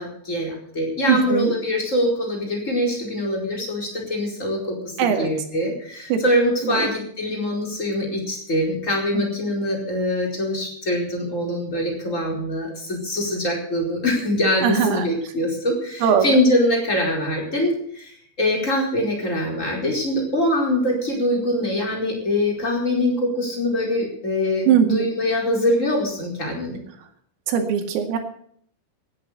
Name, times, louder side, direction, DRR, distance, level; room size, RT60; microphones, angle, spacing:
voice 1, 0.0-26.8, left 1 dB, 15° left, 0 dB, 4.4 m, -23 dB
voice 2, 1.1-1.5 5.0-5.3 6.1-6.2 14.6-15.0 16.0-16.3 24.7-25.1 27.5-28.2, right 8 dB, 90° right, 5 dB, 4.8 m, -19 dB
17.0 x 10.0 x 6.7 m, 0.63 s
omnidirectional pair, 5.8 m